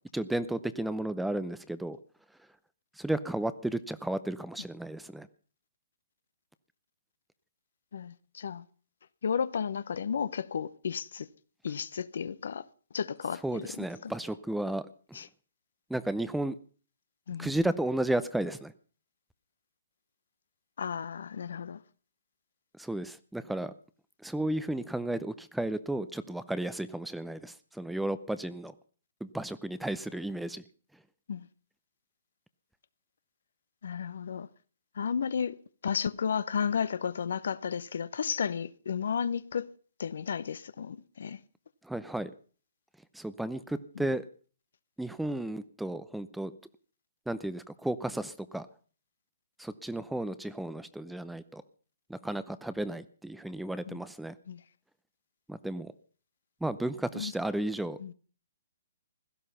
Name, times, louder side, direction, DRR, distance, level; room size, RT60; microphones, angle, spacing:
voice 1, 0.1-2.0 3.0-5.3 13.4-15.2 15.9-16.6 17.4-18.7 22.8-23.7 24.2-28.7 29.2-30.6 41.8-42.3 43.1-44.2 45.0-46.5 47.3-48.7 49.6-51.6 52.1-54.3 55.5-55.9 56.6-58.0, right 1 dB, ahead, 0.6 m, -33 dB
voice 2, 7.9-8.6 9.2-11.3 11.6-12.6 12.9-13.7 14.0-14.1 15.1-15.3 17.3-17.5 20.8-21.8 31.3-31.5 33.8-34.5 35.0-35.6 35.8-39.7 40.0-41.4 44.0-44.1 53.9-54.0 54.5-54.6 57.1-57.3 58.0-58.1, left 7 dB, 70° left, 0.8 m, -33 dB
16.5 x 12.5 x 5.6 m
hypercardioid pair, 150°, 0 cm